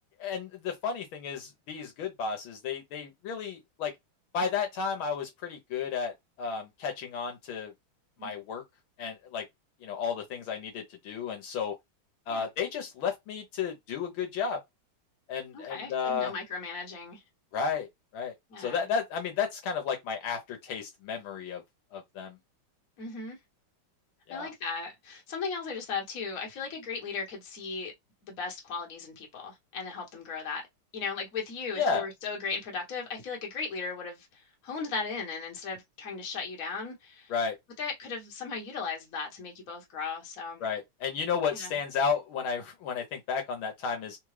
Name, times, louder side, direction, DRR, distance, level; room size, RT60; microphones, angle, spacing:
voice 1, 0.2-3.9 4.3-7.7 8.2-8.6 9.0-9.4 9.8-11.7 12.3-14.6 15.3-16.3 17.5-17.9 18.1-21.6 21.9-22.4 24.3-24.5 31.7-32.1 37.3-37.6 40.6-44.2, left 6 dB, 70° left, 1.6 m, -32 dB
voice 2, 15.5-17.2 18.5-18.9 23.0-23.4 24.3-27.9 28.2-30.7 30.9-37.3 37.8-40.6 41.5-41.8, left 4 dB, 45° left, 1.4 m, -37 dB
3.8 x 2.3 x 3.1 m
omnidirectional pair, 2.4 m